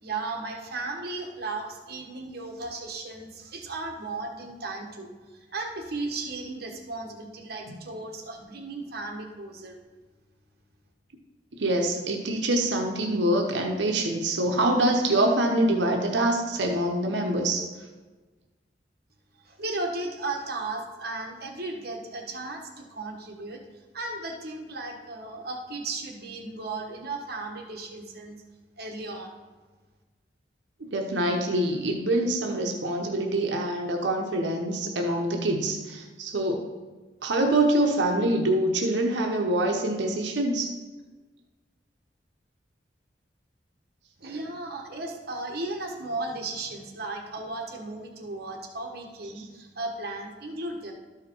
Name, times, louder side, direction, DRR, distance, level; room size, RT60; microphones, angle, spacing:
voice 1, 0.0-9.8 19.3-23.6 23.9-28.4 28.8-29.3 44.2-50.9, right 2 dB, 60° right, 2 dB, 1.3 m, -35 dB
voice 2, 11.6-17.6 30.8-36.6 37.2-40.7 44.2-44.3, right 1 dB, 85° right, 2 dB, 1.0 m, -25 dB
12.5 x 4.9 x 4.5 m, 1.3 s
head